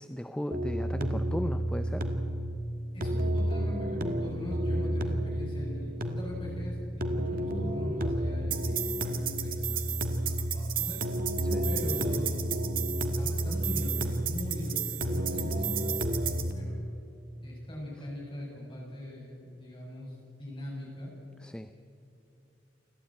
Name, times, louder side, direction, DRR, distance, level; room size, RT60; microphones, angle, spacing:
voice 1, 0.0-2.1 11.4-11.6 21.4-21.7, equal, 5° left, 9 dB, 0.5 m, -36 dB
sound 1, 0.5-16.5, right 2 dB, 50° right, 1.7 m, -30 dB
voice 2, 2.9-11.0 11.6-12.6 13.0-16.8 17.4-21.1, left 1 dB, 25° left, -3 dB, 7.3 m, -41 dB
29.0 x 12.5 x 9.0 m, 2.7 s
head